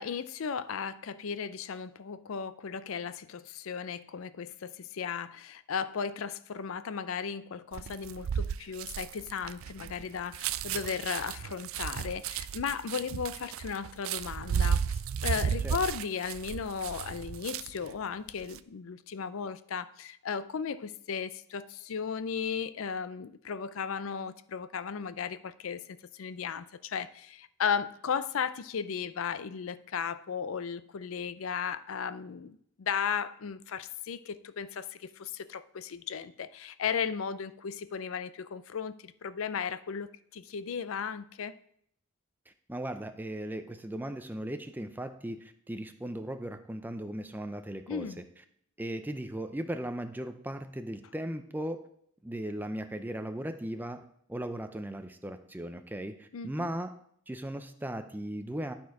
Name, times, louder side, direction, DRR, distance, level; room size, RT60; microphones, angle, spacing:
voice 1, 0.0-41.6 47.9-48.2 56.3-56.7, left 6 dB, 75° left, 0.4 m, -35 dB
sound 1, 7.7-17.9 18.3-18.6, right 7 dB, 75° right, 0.4 m, -33 dB
voice 2, 42.7-48.1 48.8-51.8 52.2-54.0 54.3-56.9 57.3-58.7, right 1 dB, 10° right, 0.5 m, -37 dB
12.0 x 4.4 x 4.7 m
head